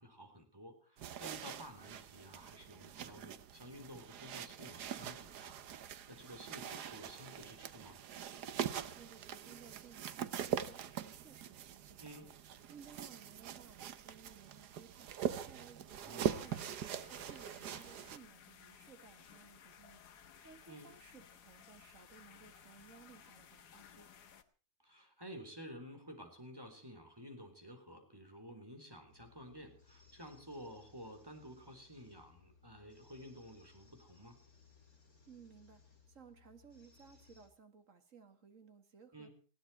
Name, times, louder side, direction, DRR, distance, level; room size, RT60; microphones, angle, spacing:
voice 1, 0.0-8.0 12.0-12.3 16.0-16.5 20.7-20.9 24.8-34.4 39.1-39.3, equal, 15° right, 4 dB, 4.0 m, -52 dB
sound 1, 1.0-18.2, right 9 dB, 85° right, 1.5 m, -43 dB
voice 2, 8.6-12.3 12.7-16.7 17.1-24.1 35.3-39.3, right 6 dB, 55° right, 8 dB, 2.3 m, -59 dB
sound 2, 16.2-24.4, left 8 dB, 85° left, 1.8 m, -59 dB
sound 3, 29.1-37.5, left 5 dB, 65° left, 4.0 m, -65 dB
20.0 x 16.0 x 4.4 m, 0.38 s
omnidirectional pair, 1.7 m